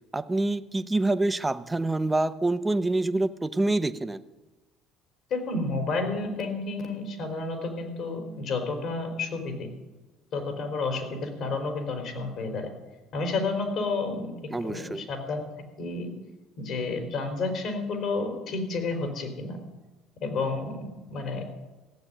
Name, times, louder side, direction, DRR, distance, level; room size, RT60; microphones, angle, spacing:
voice 1, 0.1-4.2 14.5-15.1, right 2 dB, 15° right, 12 dB, 0.8 m, -26 dB
voice 2, 5.3-9.7 10.3-12.7 13.1-14.3 14.6-15.4 15.8-16.1 16.6-19.6 20.2-21.5, left 3 dB, 60° left, 5 dB, 4.1 m, -30 dB
16.0 x 7.7 x 10.0 m, 1.2 s
supercardioid pair, 90°, 0 cm